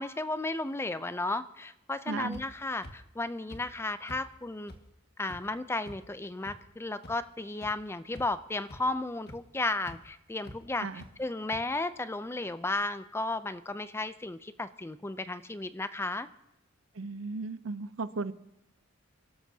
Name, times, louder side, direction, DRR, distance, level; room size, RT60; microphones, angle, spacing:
voice 1, 0.0-4.7 5.2-10.9 11.2-16.3, left 2 dB, 10° left, 0.4 m, -34 dB
voice 2, 2.1-2.4 10.8-11.0 16.9-18.3, right 3 dB, 70° right, 0.6 m, -35 dB
sound 1, 2.3-2.4 2.8-2.9 3.5-3.6 4.1-4.2 4.7-4.8 5.3-5.4 5.9-6.0 6.5-6.6 7.0-7.1 7.6-7.7 8.1-8.4 8.7-8.8 9.3-9.4 9.9-10.0 10.4-10.6 11.0-11.1 11.5-11.6, left 1 dB, 50° left, 1.8 m, -45 dB
28.5 x 13.0 x 2.8 m
head